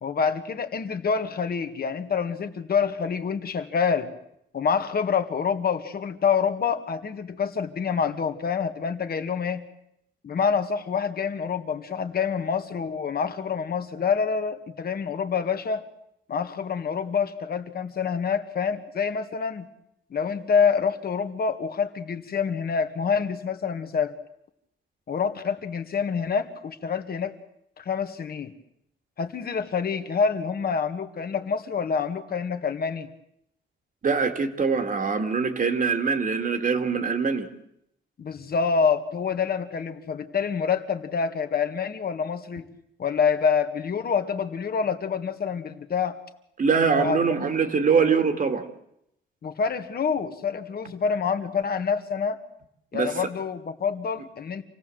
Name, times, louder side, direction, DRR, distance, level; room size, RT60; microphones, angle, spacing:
voice 1, 0.0-4.1 4.5-9.6 10.2-15.8 16.3-19.7 20.1-24.1 25.1-27.3 27.8-28.5 29.2-33.1 38.2-42.7 43.0-46.2 46.9-47.2 49.4-52.4 52.9-54.6, left 6 dB, 50° left, 7 dB, 1.7 m, -27 dB
voice 2, 34.0-37.5 46.6-48.7 52.9-53.3, right 5 dB, 40° right, 7 dB, 2.2 m, -23 dB
27.5 x 17.0 x 7.8 m, 0.78 s
cardioid pair, 130°, 20 cm